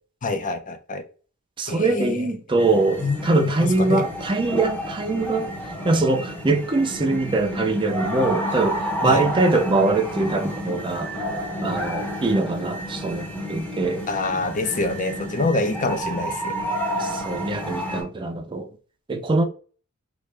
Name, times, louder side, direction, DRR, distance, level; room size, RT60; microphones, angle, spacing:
voice 1, 0.2-1.0 1.7-2.3 3.0-4.0 9.0-9.3 14.1-16.5, left 3 dB, 35° left, 0.5 m, -26 dB
voice 2, 1.6-5.5 5.8-11.1 11.6-14.0 17.0-18.7 19.1-19.5, right 2 dB, 20° right, 0.4 m, -23 dB
sound 1, 2.6-18.0, equal, 5° left, 0.8 m, -30 dB
3.1 x 2.4 x 3.2 m
head